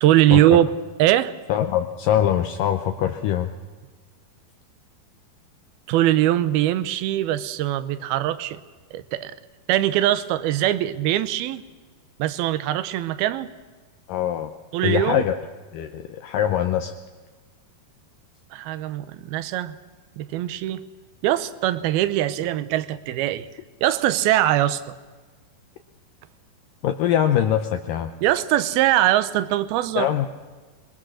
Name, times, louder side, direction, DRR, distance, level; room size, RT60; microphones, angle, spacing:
voice 1, 0.0-0.7 1.0-1.3 5.9-8.6 8.9-9.4 9.7-11.6 12.2-13.5 14.7-15.2 18.5-19.8 20.2-20.8 21.2-23.5 23.8-25.0 28.2-30.1, right 13 dB, 80° right, 14 dB, 2.7 m, -21 dB
voice 2, 1.5-3.5 14.1-14.5 14.8-15.3 15.7-16.9 26.8-28.1 30.0-30.3, left 10 dB, 75° left, 6 dB, 2.3 m, -23 dB
24.5 x 22.5 x 6.4 m, 1.4 s
omnidirectional pair, 4.4 m